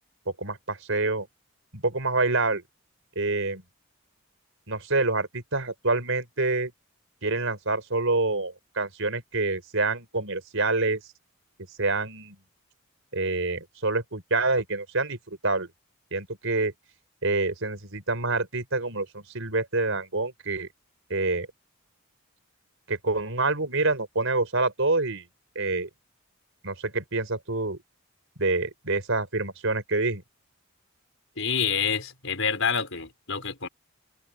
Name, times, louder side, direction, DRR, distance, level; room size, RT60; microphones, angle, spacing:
voice 1, 0.4-1.3 1.7-2.6 3.1-3.6 4.7-6.7 7.2-11.0 11.8-12.4 13.1-15.7 16.1-16.7 17.2-20.7 21.1-21.5 22.9-25.2 25.5-25.9 26.6-27.8 28.4-30.2, right 3 dB, 65° right, 4.9 m, -27 dB
voice 2, 31.4-33.7, left 6 dB, 65° left, 5.3 m, -27 dB
open air
head